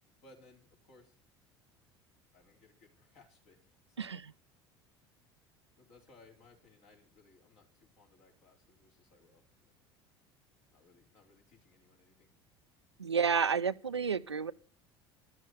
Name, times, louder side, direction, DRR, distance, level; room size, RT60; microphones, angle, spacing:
voice 1, 0.2-1.2 2.3-4.1 5.8-9.7 10.7-12.3, left 3 dB, 50° left, 4.4 m, -63 dB
voice 2, 13.0-14.5, right 6 dB, 85° right, 0.5 m, -30 dB
12.5 x 7.7 x 7.3 m
figure-of-eight pair, 70°, 14 cm